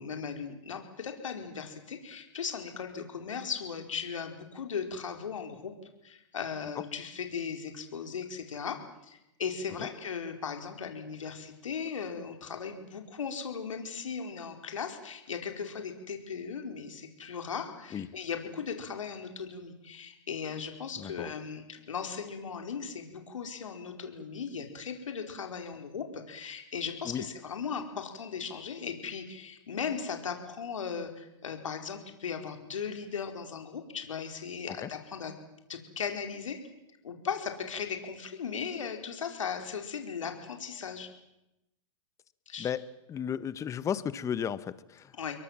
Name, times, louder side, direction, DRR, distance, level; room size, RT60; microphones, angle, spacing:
voice 1, 0.0-5.7 6.0-35.3 35.7-36.6 37.0-41.1 42.5-42.7 45.2-45.4, left 6 dB, 80° left, 5 dB, 4.8 m, -37 dB
voice 2, 21.0-21.3 27.0-27.2 34.7-34.9 42.6-42.8 43.1-45.1, left 8 dB, 20° left, 16 dB, 1.2 m, -34 dB
29.0 x 22.5 x 7.5 m, 0.89 s
hypercardioid pair, 130°, 16 cm